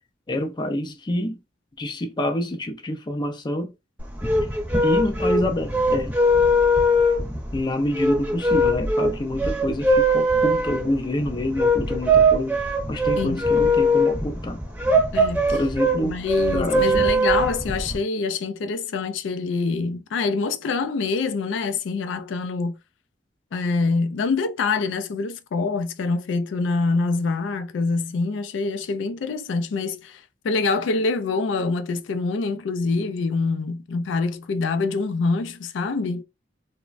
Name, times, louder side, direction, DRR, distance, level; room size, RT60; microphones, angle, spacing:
voice 1, 0.3-1.4 1.8-3.7 4.8-6.1 7.5-12.6 12.9-14.6 15.5-16.2 16.5-17.1, left 1 dB, 25° left, 0.5 m, -27 dB
sound 1, 4.0-18.0, equal, 10° right, 0.7 m, -21 dB
voice 2, 15.1-15.6 16.0-22.8 23.5-36.2, left 4 dB, 90° left, 0.4 m, -25 dB
3.1 x 2.1 x 2.4 m
head